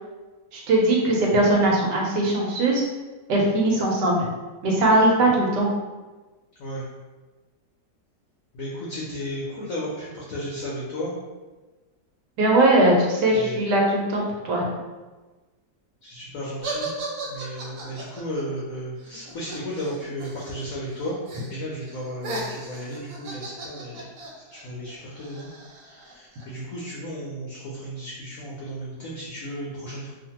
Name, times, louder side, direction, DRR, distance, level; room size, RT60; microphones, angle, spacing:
voice 1, 0.5-2.8 3.3-4.3 4.6-5.7 12.4-14.7, right 1 dB, 85° right, -1 dB, 1.3 m, -20 dB
voice 2, 8.5-11.1 13.3-13.6 16.0-16.9 17.3-21.2 21.5-24.1 24.4-25.5 25.8-30.1, equal, 65° left, -6 dB, 0.9 m, -34 dB
sound 1, 16.6-20.6 20.9-21.5 21.8-26.4, right 3 dB, 65° right, 1.0 m, -36 dB
2.7 x 2.5 x 2.8 m, 1.2 s
omnidirectional pair, 1.8 m